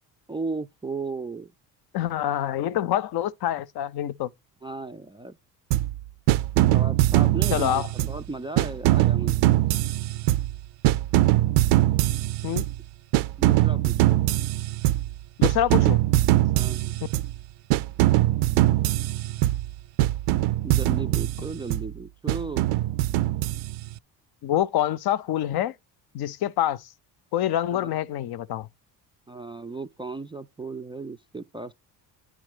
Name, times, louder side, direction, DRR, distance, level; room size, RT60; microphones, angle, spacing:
voice 1, 0.3-1.5 4.6-5.4 6.5-9.6 13.4-14.3 16.5-16.9 20.6-22.7 27.7-27.9 29.3-31.7, right 3 dB, 15° right, 0.3 m, -35 dB
voice 2, 1.9-4.3 7.5-7.9 12.4-12.6 15.4-16.0 24.4-25.7 26.1-26.8 27.3-28.7, left 11 dB, 60° left, 0.6 m, -26 dB
sound 1, 5.7-6.0 6.3-8.2 8.6-10.6 10.8-12.8 13.1-15.1 15.4-17.4 17.7-19.7 20.0-21.9 22.3-23.9, right 15 dB, 70° right, 0.5 m, -22 dB
9.0 x 3.6 x 4.9 m
supercardioid pair, 75°, 44 cm